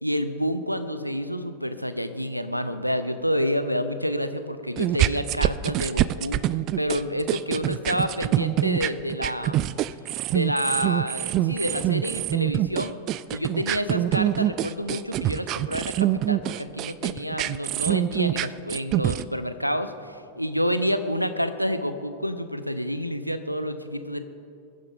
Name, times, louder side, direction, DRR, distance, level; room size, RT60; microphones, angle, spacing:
voice 1, 0.0-6.4 6.8-9.7 10.3-13.0 13.3-24.2, equal, 90° right, 11 dB, 0.6 m, -28 dB
sound 1, 4.8-19.2, right 13 dB, 35° right, 0.3 m, -25 dB
21.5 x 10.0 x 3.6 m, 2.5 s
figure-of-eight pair, 90°, 0 cm